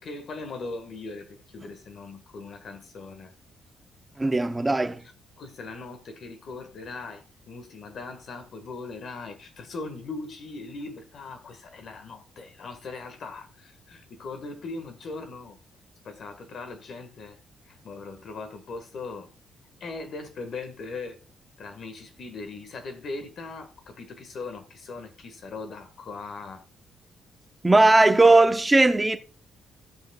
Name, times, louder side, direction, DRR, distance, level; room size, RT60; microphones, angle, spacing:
voice 1, 0.0-3.3 5.4-15.6 16.0-17.4 17.7-19.3 19.8-21.2 21.6-26.6, left 3 dB, 60° left, 1.6 m, -39 dB
voice 2, 4.2-5.0 27.6-29.2, right 2 dB, 15° right, 0.8 m, -18 dB
16.5 x 5.7 x 2.3 m
cardioid pair, 90°, 0 cm